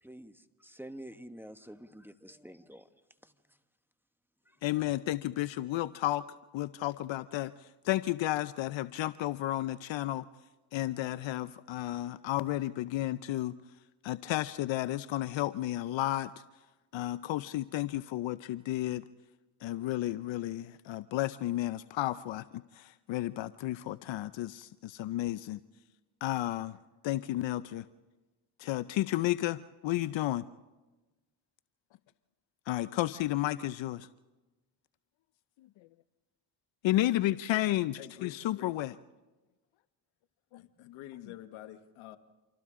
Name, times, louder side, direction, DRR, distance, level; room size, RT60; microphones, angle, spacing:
voice 1, 0.0-2.9 3.2-3.6 4.5-4.6, right 1 dB, 5° right, 1.0 m, -49 dB
voice 2, 4.6-6.2 6.5-10.3 10.7-13.5 14.0-16.3 16.9-19.0 19.6-25.6 26.2-26.8 27.0-27.8 28.6-29.6 29.8-30.4 32.7-34.1 36.8-38.9 40.5-40.6, left 15 dB, 70° left, 0.6 m, -32 dB
voice 3, 38.0-38.7 40.5-42.2, left 13 dB, 85° left, 1.2 m, -48 dB
29.0 x 26.0 x 3.7 m
cardioid pair, 70°, 48 cm